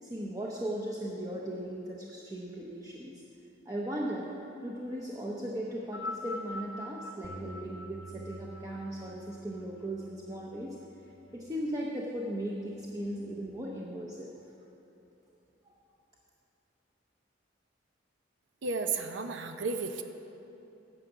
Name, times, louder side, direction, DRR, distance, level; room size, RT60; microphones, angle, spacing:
voice 1, 0.0-3.2 3.7-4.3 4.6-10.8 11.3-14.3 15.6-15.7, right 1 dB, 20° right, -3 dB, 0.7 m, -37 dB
sound 1, 5.8-10.3 11.2-11.3, left 2 dB, 70° left, 1.0 m, -43 dB
Bass guitar, 7.2-11.7 12.3-13.5, right 2 dB, 15° left, 0.7 m, -51 dB
voice 2, 18.6-20.0, right 4 dB, 75° right, 6 dB, 0.6 m, -33 dB
9.8 x 6.0 x 7.9 m, 2.9 s
head